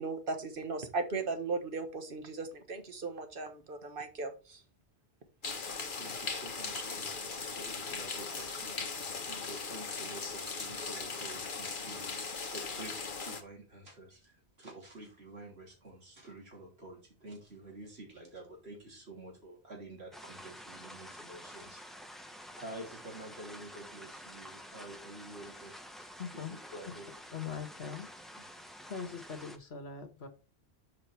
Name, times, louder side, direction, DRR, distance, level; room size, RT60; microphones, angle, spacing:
voice 1, 0.0-4.6, right 3 dB, 55° right, 7 dB, 1.5 m, -37 dB
sound 1, 5.4-13.4, left 4 dB, 50° left, 1.2 m, -39 dB
voice 2, 5.7-8.7 9.3-26.1 26.5-27.1 28.4-28.5, right 1 dB, 70° right, -1 dB, 3.4 m, -49 dB
sound 2, 20.1-29.6, equal, ahead, 0.8 m, -49 dB
voice 3, 26.2-26.5 27.3-28.1 28.9-30.3, left 6 dB, 70° left, 7 dB, 1.6 m, -41 dB
7.7 x 5.2 x 4.5 m, 0.33 s
omnidirectional pair, 1.1 m